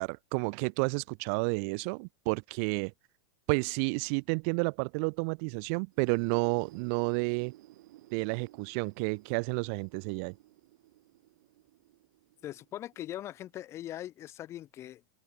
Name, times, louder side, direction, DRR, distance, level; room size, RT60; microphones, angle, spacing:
voice 1, 0.0-2.9 3.5-7.5 8.1-10.3, right 37 dB, 45° right, 0.5 m, -31 dB
sound 1, 5.9-13.6, right 16 dB, 65° right, 5.1 m, -56 dB
voice 2, 12.4-15.1, left 12 dB, 25° left, 1.3 m, -41 dB
open air
supercardioid pair, 160°, 11 cm